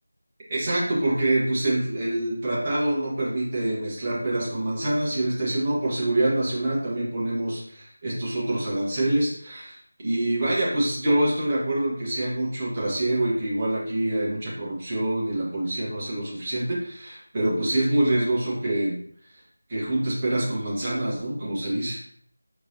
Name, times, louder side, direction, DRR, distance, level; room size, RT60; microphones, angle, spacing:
voice 1, 0.5-19.0 19.3-19.4 19.7-22.0, right 1 dB, 20° right, -6 dB, 1.5 m, -26 dB
4.5 x 3.3 x 2.8 m, 0.62 s
figure-of-eight pair, 170°, 0 cm